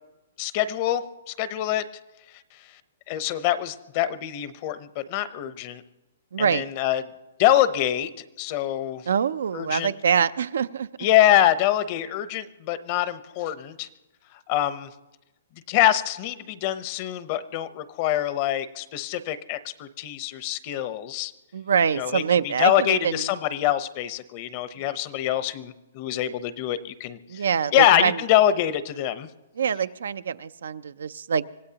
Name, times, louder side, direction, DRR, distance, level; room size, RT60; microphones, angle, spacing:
voice 1, 0.4-1.8 2.5-2.8 3.1-5.8 6.4-7.0 7.4-8.1 8.4-9.1 9.5-9.9 11.0-13.9 14.3-14.9 15.7-21.3 22.0-27.5 27.7-29.3, left 12 dB, 40° left, 13 dB, 0.8 m, -24 dB
voice 2, 6.3-6.6 9.1-10.9 21.5-23.2 27.3-28.2 29.6-31.5, right 7 dB, 80° right, 14 dB, 0.5 m, -24 dB
25.5 x 16.5 x 2.9 m, 1.0 s
hypercardioid pair, 145°, 0 cm